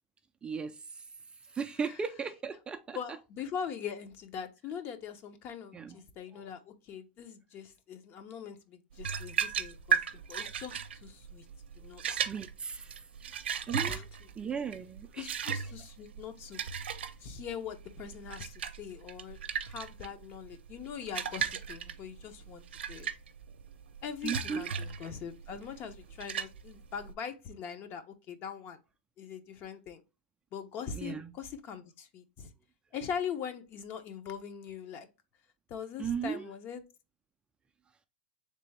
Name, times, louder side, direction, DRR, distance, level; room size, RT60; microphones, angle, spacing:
voice 1, 0.4-1.1 1.5-3.0 5.7-6.0 12.0-13.3 13.7-14.1 14.4-15.6 19.5-19.6 24.2-24.7 30.9-31.3 36.0-36.5, right 6 dB, 15° right, 0.3 m, -37 dB
voice 2, 2.9-11.4 11.8-12.0 13.9-14.0 15.2-16.7 17.2-23.1 24.0-28.8 29.2-30.0 30.5-32.5 32.9-35.1 35.7-36.8, left 7 dB, 40° left, 0.7 m, -42 dB
sound 1, 9.0-27.1, right 7 dB, 85° right, 0.5 m, -36 dB
3.4 x 3.3 x 3.2 m
hypercardioid pair, 125°, 6 cm